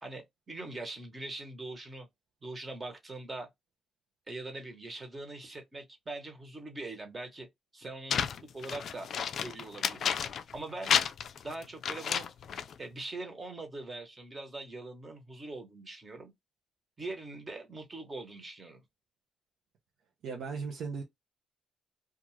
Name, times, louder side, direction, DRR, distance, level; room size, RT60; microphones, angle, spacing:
voice 1, 0.0-2.1 2.4-3.5 4.3-7.5 7.7-9.1 9.4-10.2 10.5-10.9 11.4-12.3 12.8-16.3 17.0-18.8, right 2 dB, 25° right, 1.1 m, -42 dB
sound 1, 8.1-10.6 10.8-12.7, left 7 dB, 60° left, 0.3 m, -31 dB
voice 2, 20.2-21.0, right 5 dB, 75° right, 0.6 m, -36 dB
2.4 x 2.4 x 3.1 m
cardioid pair, 90°, 0 cm